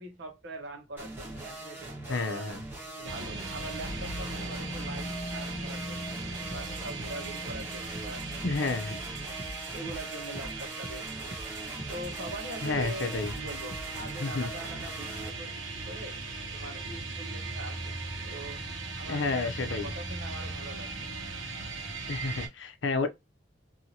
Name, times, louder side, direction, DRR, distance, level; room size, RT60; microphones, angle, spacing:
voice 1, 0.0-2.5 2.9-6.2 6.5-9.4 9.7-11.4 11.9-16.2 16.5-18.0 18.2-18.6 19.0-21.1, right 2 dB, 65° right, 1.1 m, -43 dB
sound 1, 1.0-15.3, right 2 dB, 10° right, 1.1 m, -42 dB
voice 2, 2.1-2.6 8.4-9.0 12.6-13.3 14.2-14.5 19.1-19.9 22.1-23.1, left 3 dB, 70° left, 0.6 m, -30 dB
sound 2, 3.0-22.5, right 3 dB, 85° right, 1.1 m, -38 dB
sound 3, 6.5-14.2, right 1 dB, 40° right, 0.8 m, -45 dB
2.8 x 2.7 x 2.8 m
head